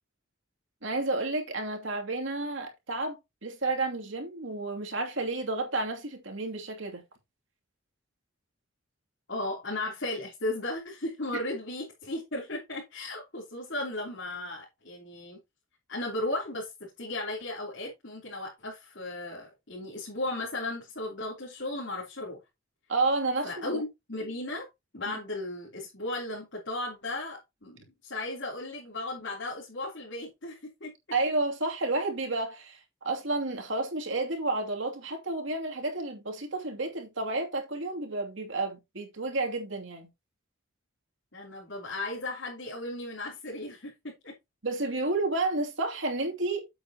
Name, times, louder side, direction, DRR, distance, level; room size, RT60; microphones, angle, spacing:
voice 1, 0.8-7.0 22.9-23.8 25.1-25.2 31.1-40.1 44.6-46.7, right 2 dB, 75° right, 2.7 m, -31 dB
voice 2, 9.3-15.4 15.9-22.4 23.4-24.7 24.9-30.9 41.3-44.3, left 2 dB, 65° left, 3.3 m, -36 dB
8.9 x 8.0 x 2.9 m
head